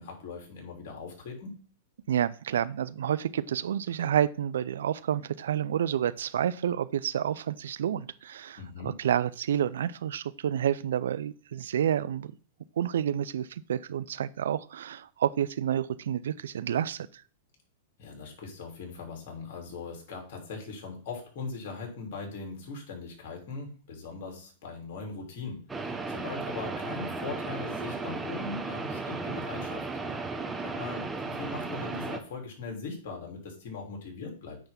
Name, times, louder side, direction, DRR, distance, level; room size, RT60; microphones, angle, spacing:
voice 1, 0.0-1.6 8.6-8.9 18.0-29.9 30.6-34.6, left 4 dB, 60° left, 3.2 m, -40 dB
voice 2, 2.1-12.3 12.8-17.2, right 9 dB, 80° right, 0.4 m, -29 dB
sound 1, 25.7-32.2, right 3 dB, 10° right, 1.0 m, -35 dB
9.1 x 3.5 x 5.7 m
hypercardioid pair, 125°, 0 cm